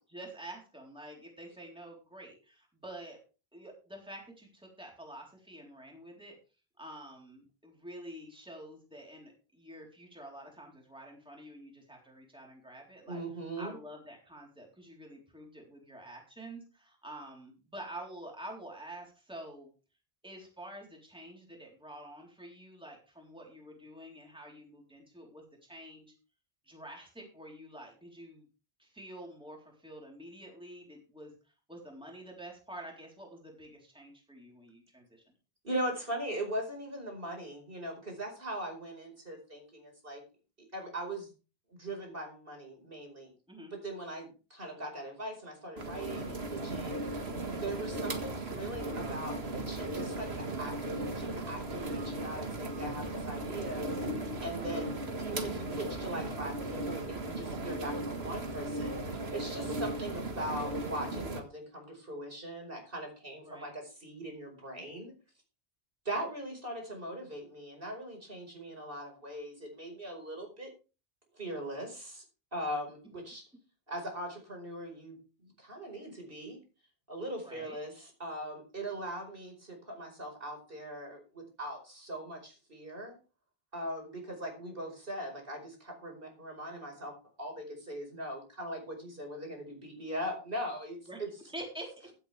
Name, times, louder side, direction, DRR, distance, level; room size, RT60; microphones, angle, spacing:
voice 1, 0.1-3.2 3.5-6.3 6.8-13.2 13.6-19.7 20.2-25.4 25.7-26.1 26.7-28.5 28.8-31.3 31.7-35.2 43.5-43.7 63.4-63.7 77.4-77.8 91.1-91.2 91.5-92.1, right 1 dB, 5° right, -1 dB, 3.8 m, -48 dB
voice 2, 13.1-13.8 35.6-40.2 40.7-41.3 41.7-43.3 43.7-47.0 47.6-53.9 54.4-65.1 66.1-70.7 71.3-72.2 72.5-73.4 73.9-76.6 77.1-83.2 83.7-87.1 87.4-91.3, right 1 dB, 60° right, 2 dB, 5.1 m, -40 dB
sound 1, 45.8-61.4, right 2 dB, 80° right, 2.1 m, -37 dB
15.5 x 10.5 x 3.4 m, 0.33 s
omnidirectional pair, 1.0 m